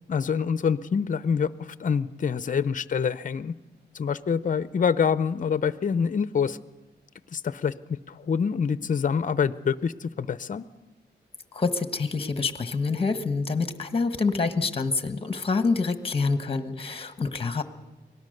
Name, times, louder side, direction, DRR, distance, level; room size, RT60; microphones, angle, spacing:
voice 1, 0.1-3.5 3.9-6.6 7.3-10.6, left 6 dB, 45° left, 16 dB, 0.6 m, -26 dB
voice 2, 11.5-17.6, left 4 dB, 30° left, 10 dB, 1.3 m, -26 dB
24.5 x 18.0 x 6.6 m, 1.1 s
wide cardioid pair, 105°, 18 cm